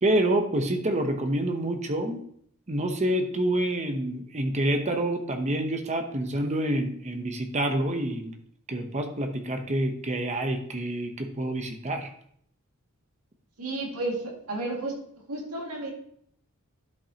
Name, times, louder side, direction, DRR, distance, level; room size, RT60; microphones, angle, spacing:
voice 1, 0.0-2.2 2.7-8.3 8.7-12.1, right 1 dB, 30° right, 5 dB, 0.8 m, -27 dB
voice 2, 13.6-15.0 15.3-15.9, right 2 dB, 80° right, -1 dB, 2.1 m, -32 dB
11.5 x 5.3 x 2.8 m, 0.65 s
head